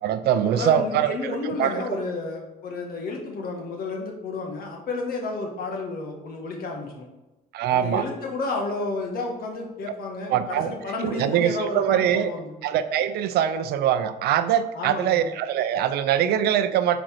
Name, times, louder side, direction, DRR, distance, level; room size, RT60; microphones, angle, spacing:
voice 1, 0.0-1.8 7.5-8.1 10.3-10.7 11.0-12.3 12.6-17.0, right 10 dB, 75° right, 11 dB, 0.5 m, -23 dB
voice 2, 0.5-7.1 7.7-12.5 14.7-15.3, left 3 dB, 60° left, 1 dB, 1.6 m, -31 dB
5.2 x 4.4 x 5.7 m, 1.0 s
cardioid pair, 110°, 17 cm